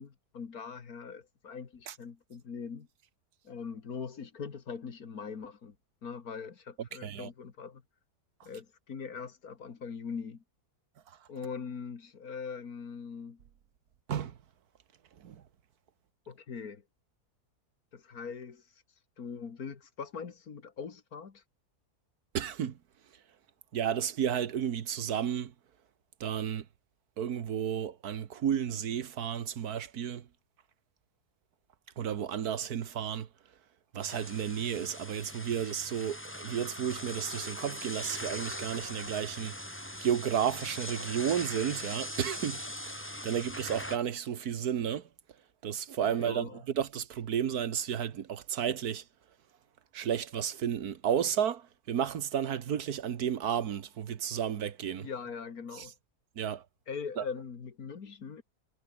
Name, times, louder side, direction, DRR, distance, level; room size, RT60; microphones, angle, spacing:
voice 1, 0.0-2.9 3.4-5.8 6.0-7.8 8.4-10.4 11.3-13.4 16.3-16.8 17.9-18.6 19.2-21.4 46.1-46.6 55.0-55.9 56.9-58.4, left 6 dB, 70° left, 2.3 m, -41 dB
voice 2, 22.3-22.7 23.7-25.5 26.2-26.6 27.2-30.2 32.0-33.3 33.9-39.5 40.0-42.6 43.2-45.0 45.6-49.0 49.9-51.6 51.9-55.1 56.4-56.6 57.2-57.3, right 9 dB, 75° right, 1.6 m, -32 dB
sound 1, 34.0-44.0, left 1 dB, 5° left, 2.8 m, -41 dB
omnidirectional pair, 1.7 m